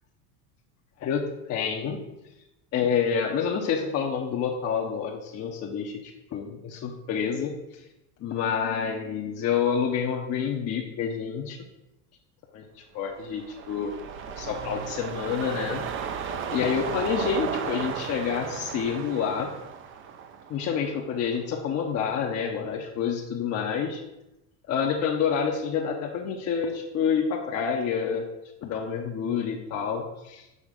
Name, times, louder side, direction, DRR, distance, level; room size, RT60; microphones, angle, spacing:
voice 1, 1.0-2.0 2.7-7.8 8.2-11.6 12.5-12.6 12.9-13.9 14.4-15.8 16.5-19.5 20.5-24.0 24.7-28.3 28.6-30.5, left 7 dB, 35° left, 0 dB, 0.7 m, -28 dB
sound 1, 13.1-21.5 21.9-22.0, right 7 dB, 30° right, 0.4 m, -35 dB
6.4 x 3.2 x 5.1 m, 0.91 s
supercardioid pair, 125°, 48 cm